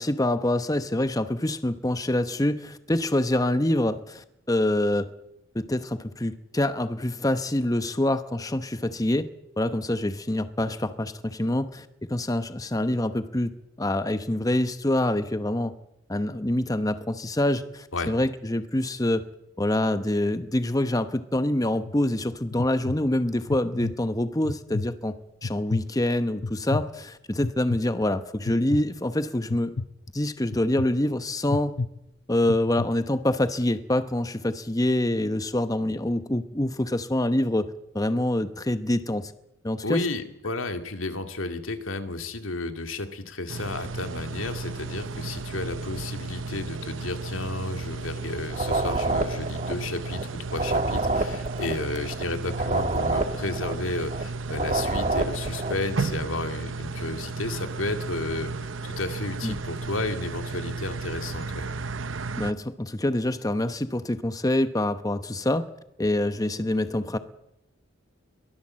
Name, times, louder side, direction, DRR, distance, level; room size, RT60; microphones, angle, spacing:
voice 1, 0.0-5.1 5.5-9.3 9.6-15.8 16.1-19.3 19.6-25.1 25.4-29.7 30.1-31.7 32.3-39.3 39.6-40.0 59.4-59.6 62.4-65.7 66.0-67.2, left 1 dB, 20° left, 11 dB, 0.9 m, -26 dB
sound 1, 21.6-22.0 22.5-23.0 23.5-23.9 24.4-24.9 25.4-25.9 26.4-26.9 27.4-27.8 28.5-28.8 29.5-29.9 30.5-30.9 31.5-31.9 32.4-32.9, left 3 dB, 50° left, 0.8 m, -30 dB
voice 2, 39.8-61.7, left 2 dB, 90° left, 7 dB, 2.2 m, -32 dB
sound 2, 43.5-62.5, right 3 dB, 75° right, 0.8 m, -34 dB
sound 3, 48.5-50.2 50.5-54.2 54.5-55.9, right 2 dB, 35° right, 1.4 m, -28 dB
23.0 x 17.0 x 7.5 m, 0.81 s
head